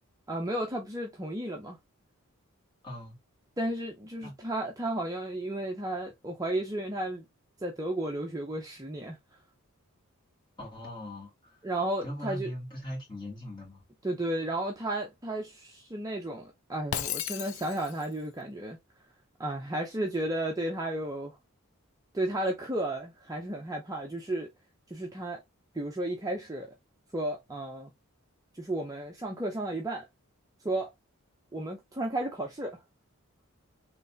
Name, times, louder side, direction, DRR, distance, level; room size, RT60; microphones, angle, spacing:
voice 1, 0.3-1.8 3.6-7.3 7.6-9.2 11.6-12.5 14.0-18.8 19.4-21.4 22.1-24.5 24.9-25.4 25.7-26.7 27.1-27.9 28.5-30.0 30.6-30.9 31.5-32.8, right 1 dB, 15° right, 0.5 m, -33 dB
voice 2, 2.8-3.1 4.2-4.3 10.6-11.6 12.0-13.8, left 1 dB, 20° left, 2.2 m, -40 dB
Shatter, 16.9-18.1, left 10 dB, 70° left, 0.4 m, -34 dB
4.0 x 3.2 x 2.6 m
head